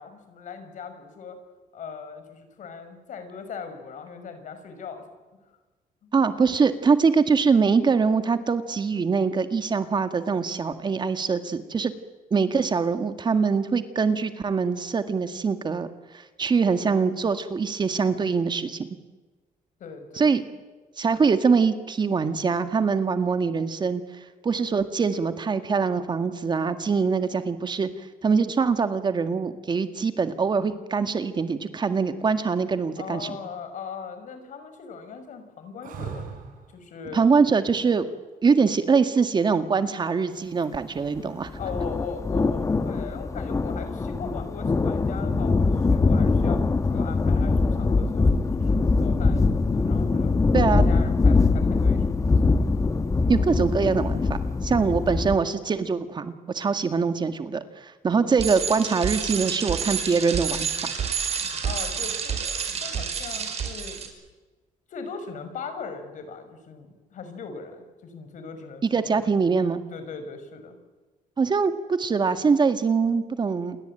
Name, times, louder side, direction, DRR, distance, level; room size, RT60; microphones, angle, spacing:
voice 1, 0.0-1.4 1.7-5.0 6.0-6.1 19.8-20.2 33.0-36.3 36.7-37.3 41.6-50.3 50.7-52.3 61.6-64.0 64.9-69.3 69.9-70.8, left 5 dB, 65° left, 8 dB, 5.8 m, -39 dB
voice 2, 6.1-11.9 12.3-15.9 16.1-18.9 20.2-20.4 21.0-24.0 24.4-33.4 37.1-38.1 38.4-41.5 50.5-50.8 53.3-60.7 68.8-69.8 71.4-73.8, right 5 dB, 30° right, 9 dB, 1.8 m, -23 dB
sound 1, 35.8-36.8 39.4-40.0, right 7 dB, 70° right, 6.3 m, -38 dB
sound 2, 41.5-55.4, left 3 dB, 20° left, 1.2 m, -22 dB
Bicycle, 58.4-64.1, right 7 dB, 50° right, 5.2 m, -29 dB
28.5 x 22.5 x 9.0 m, 1.2 s
cardioid pair, 130°, 14 cm